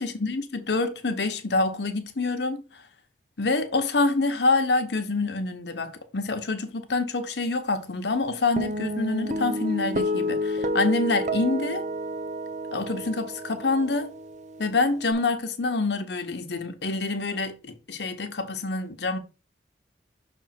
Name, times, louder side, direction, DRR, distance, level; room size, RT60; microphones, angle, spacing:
voice 1, 0.0-2.6 3.4-11.8 12.7-14.1 14.6-19.2, left 3 dB, 75° left, 1.0 m, -26 dB
Guitar, 8.6-15.1, equal, 40° right, 0.7 m, -30 dB
6.2 x 3.3 x 5.8 m
head